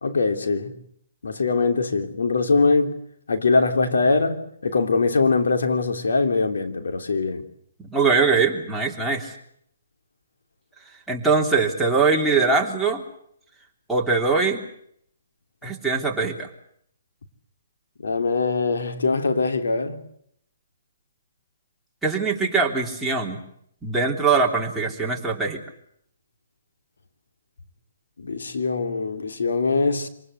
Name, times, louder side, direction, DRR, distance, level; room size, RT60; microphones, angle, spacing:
voice 1, 0.0-0.7 1.2-2.9 3.3-7.4 18.0-20.0 28.2-30.1, left 4 dB, 80° left, 3.3 m, -22 dB
voice 2, 7.8-9.3 11.1-13.0 13.9-14.6 15.6-16.5 22.0-23.4 23.8-25.6, right 4 dB, 5° right, 3.4 m, -22 dB
26.5 x 19.5 x 8.2 m
hypercardioid pair, 150°, 0 cm